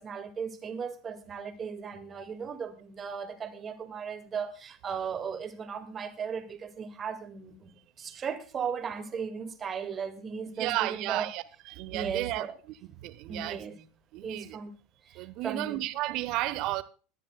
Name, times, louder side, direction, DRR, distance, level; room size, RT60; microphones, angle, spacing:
voice 1, 0.0-11.3 11.9-12.6 13.3-13.8 14.2-14.7 15.0-15.9, right 6 dB, 30° right, 1.9 m, -37 dB
voice 2, 10.6-11.4 11.7-12.5 13.0-13.6 14.1-14.6 15.1-16.8, right 16 dB, 50° right, 1.0 m, -32 dB
22.5 x 10.0 x 2.2 m
figure-of-eight pair, 80°, 0 cm